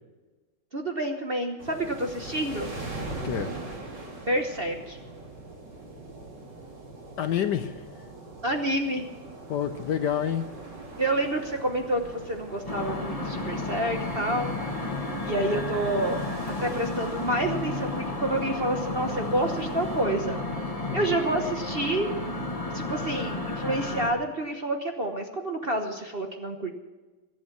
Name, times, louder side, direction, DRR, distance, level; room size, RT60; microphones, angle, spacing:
voice 1, 0.7-2.7 4.3-5.0 8.4-9.1 11.0-14.5 15.2-16.2 16.6-20.4 20.9-22.2 22.7-26.7, right 1 dB, 35° right, 4 dB, 1.0 m, -28 dB
sound 1, 1.6-20.0, right 2 dB, 55° right, 4.0 m, -42 dB
voice 2, 3.1-3.5 7.2-7.8 9.5-10.4 20.9-21.0, left 9 dB, 65° left, 9 dB, 1.2 m, -28 dB
sound 2, 12.7-24.1, left 2 dB, 15° left, 2.1 m, -32 dB
22.5 x 8.4 x 6.0 m, 1.2 s
omnidirectional pair, 2.3 m